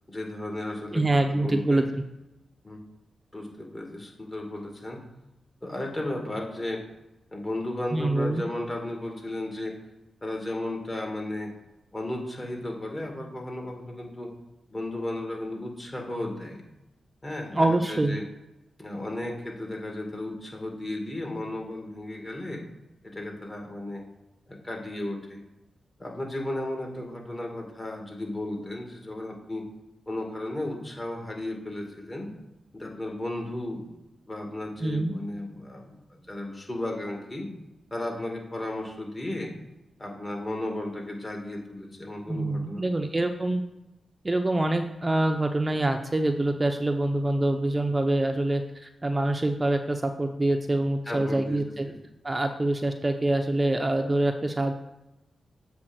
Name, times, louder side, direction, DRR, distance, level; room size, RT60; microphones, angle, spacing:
voice 1, 0.1-1.0 1.3-1.8 2.6-2.8 3.3-5.0 5.6-6.8 7.3-9.7 10.2-11.5 11.9-14.3 14.7-16.6 17.2-18.2 18.8-22.6 23.0-24.0 24.5-25.4 26.0-29.7 30.1-32.3 32.7-33.8 34.3-37.5 37.9-39.5 40.0-42.9 51.0-51.6 51.9-52.0, left 1 dB, 25° left, 1 dB, 2.3 m, -34 dB
voice 2, 0.9-2.0 7.9-8.4 17.5-18.2 34.8-35.1 42.3-43.6 44.2-51.9 52.2-54.7, right 2 dB, 25° right, 6 dB, 0.7 m, -25 dB
7.7 x 3.5 x 6.2 m, 0.95 s
cardioid pair, 45°, 0 cm